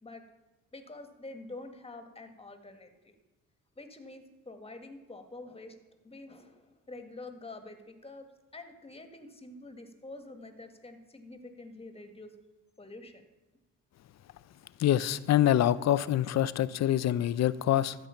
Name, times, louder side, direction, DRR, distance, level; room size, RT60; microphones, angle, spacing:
voice 1, 0.7-3.1 3.7-5.8 6.0-8.3 8.5-12.3 12.8-13.2, left 2 dB, 20° left, 6 dB, 1.8 m, -47 dB
voice 2, 14.8-18.0, left 12 dB, 60° left, 17 dB, 0.6 m, -25 dB
13.5 x 8.1 x 5.8 m, 1.1 s
cardioid pair, 90°, 30 cm